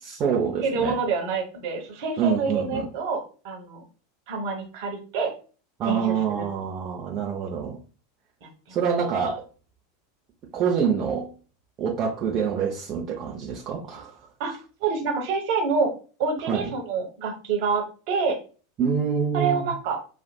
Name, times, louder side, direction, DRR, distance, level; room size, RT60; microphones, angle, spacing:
voice 1, 0.0-1.0 2.2-2.9 5.8-7.8 8.7-9.4 10.5-11.3 11.8-14.2 16.5-16.7 18.8-19.7, right 7 dB, 35° right, 0.6 m, -26 dB
voice 2, 0.6-3.8 4.3-5.3 5.9-6.4 8.4-8.8 14.4-15.9 16.2-18.4 19.3-20.0, right 4 dB, 50° right, 1.1 m, -27 dB
5.3 x 2.4 x 2.2 m
figure-of-eight pair, 85°, 0 cm